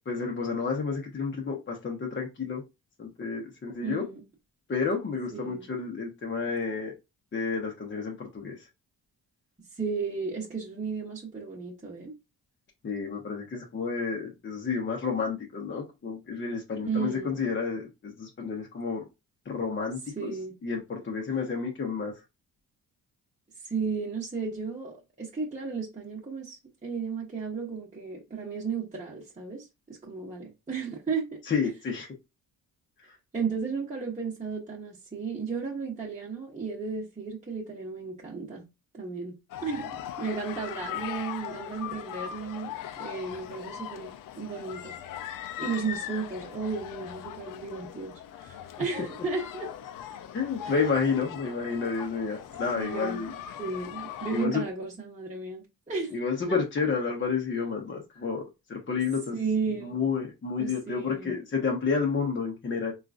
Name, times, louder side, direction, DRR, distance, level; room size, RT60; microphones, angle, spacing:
voice 1, 0.1-2.6 3.0-4.0 4.7-6.9 7.3-8.6 12.8-19.0 19.5-20.3 20.6-22.1 31.5-32.1 50.3-53.3 54.3-54.6 56.1-58.4 58.7-59.3 59.8-62.9, left 5 dB, 30° left, 0.9 m, -30 dB
voice 2, 3.8-4.2 5.3-5.7 9.7-12.1 16.8-17.4 20.1-20.5 23.6-31.4 33.3-38.6 38.9-39.4 39.6-42.7 43.0-44.1 44.4-44.9 45.6-49.7 50.6-50.7 52.7-56.2 56.5-56.6 59.3-60.0 60.6-61.4, right 5 dB, 20° right, 1.0 m, -34 dB
sound 1, 39.5-54.5, left 10 dB, 60° left, 0.5 m, -40 dB
3.7 x 2.4 x 2.4 m
cardioid pair, 75°, 37 cm